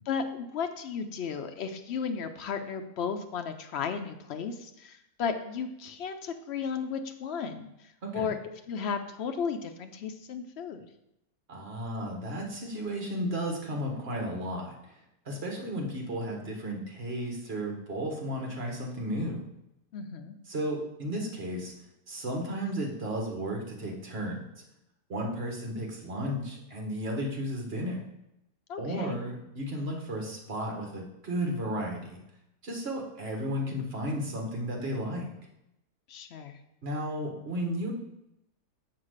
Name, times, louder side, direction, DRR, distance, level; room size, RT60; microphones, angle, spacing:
voice 1, 0.1-7.7 8.1-8.4 8.7-10.8 19.9-20.4 28.7-29.2 36.1-36.6, left 6 dB, 70° left, 6 dB, 0.6 m, -34 dB
voice 2, 8.0-8.3 11.5-14.7 15.2-19.4 20.5-21.7 22.1-24.4 25.1-28.0 28.8-32.2 32.6-35.3 36.8-37.9, equal, 40° right, 0 dB, 1.6 m, -33 dB
6.9 x 3.9 x 6.5 m, 0.85 s
omnidirectional pair, 1.8 m